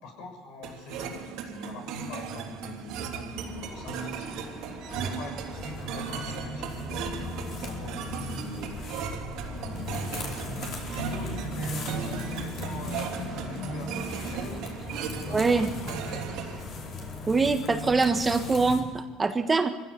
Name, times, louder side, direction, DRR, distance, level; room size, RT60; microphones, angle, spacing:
voice 1, 0.0-4.5 4.9-8.7 9.5-14.7 15.2-16.3, left 2 dB, 75° left, 4 dB, 6.3 m, -43 dB
sound 1, 0.6-16.6, right 7 dB, 70° right, 3.3 m, -37 dB
sound 2, 3.4-17.4, left 2 dB, 25° left, 4.2 m, -45 dB
sound 3, 5.5-18.8, left 1 dB, 50° left, 4.4 m, -37 dB
voice 2, 15.3-15.7 17.3-19.7, right 4 dB, 15° right, 7 dB, 1.5 m, -24 dB
24.5 x 16.0 x 7.1 m, 1.3 s
cardioid pair, 135°, 0 cm